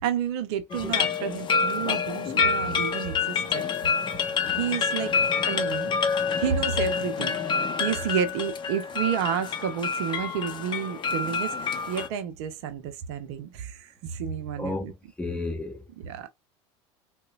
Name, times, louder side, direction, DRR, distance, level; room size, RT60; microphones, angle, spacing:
voice 1, 0.0-3.6 4.6-5.1 5.5-5.9 6.4-7.4 7.8-14.9 16.0-16.3, right 8 dB, 65° right, 0.6 m, -30 dB
sound 1, 0.7-12.1, left 5 dB, 30° left, 0.6 m, -27 dB
voice 2, 14.6-15.8, left 2 dB, 5° left, 1.0 m, -32 dB
3.9 x 2.1 x 2.3 m
hypercardioid pair, 80°, 15 cm